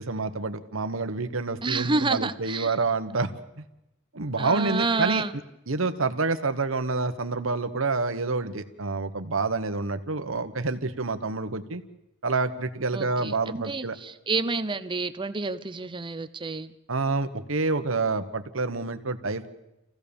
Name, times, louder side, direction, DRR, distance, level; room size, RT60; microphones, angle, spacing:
voice 1, 0.0-3.3 3.6-3.7 4.1-5.2 5.7-11.8 12.2-14.0 16.9-19.5, right 3 dB, 70° right, 10 dB, 1.3 m, -28 dB
voice 2, 1.6-2.7 4.4-5.3 12.9-16.7, right 3 dB, 25° right, 12 dB, 0.8 m, -29 dB
27.0 x 16.0 x 7.1 m, 0.92 s
head